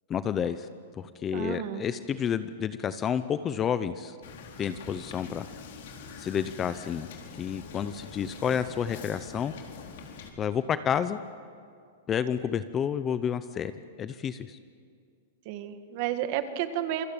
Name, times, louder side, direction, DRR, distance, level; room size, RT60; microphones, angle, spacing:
voice 1, 0.1-0.7 1.0-4.2 4.6-5.5 6.2-7.1 7.4-9.5 10.4-11.2 12.1-13.7 14.0-14.6, left 8 dB, 15° left, 12 dB, 0.6 m, -30 dB
voice 2, 1.3-1.8 15.5-17.1, right 11 dB, 40° right, 9 dB, 1.8 m, -31 dB
Wind / Boat Water vehicle, 4.2-10.3, left 5 dB, 55° left, 4.3 m, -45 dB
27.5 x 24.5 x 8.8 m, 2.3 s
supercardioid pair, 170°, 0 cm